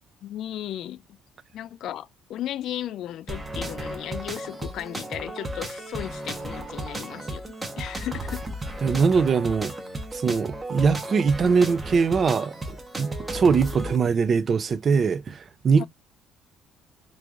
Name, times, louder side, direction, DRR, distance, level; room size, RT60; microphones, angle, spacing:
voice 1, 0.2-1.0 1.5-8.4 15.8-15.9, left 12 dB, 65° left, 0.3 m, -35 dB
sound 1, 3.3-14.0, right 1 dB, 20° right, 0.9 m, -34 dB
voice 2, 8.8-9.7 10.1-15.8, right 5 dB, 40° right, 0.4 m, -22 dB
3.0 x 2.5 x 3.5 m
cardioid pair, 115°, 0 cm